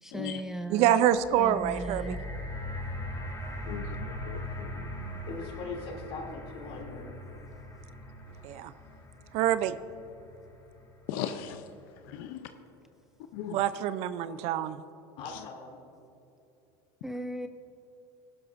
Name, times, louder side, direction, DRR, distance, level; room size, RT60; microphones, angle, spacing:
voice 1, 0.0-0.9 1.4-2.2 17.0-17.5, right 1 dB, 5° right, 7 dB, 0.5 m, -37 dB
voice 2, 0.7-2.0 8.4-8.7 9.3-9.8 13.5-14.8, right 11 dB, 60° right, 14 dB, 0.5 m, -26 dB
sound 1, 1.1-11.3 12.1-12.2, equal, 25° left, 2.5 m, -40 dB
voice 3, 3.7-5.2 11.1-11.6 12.1-12.5 13.3-13.6, left 10 dB, 75° left, 8 dB, 0.6 m, -38 dB
voice 4, 5.3-7.1 15.2-15.8, left 3 dB, 55° left, 0 dB, 2.8 m, -40 dB
16.0 x 11.5 x 2.6 m, 2.8 s
supercardioid pair, 100°, 12 cm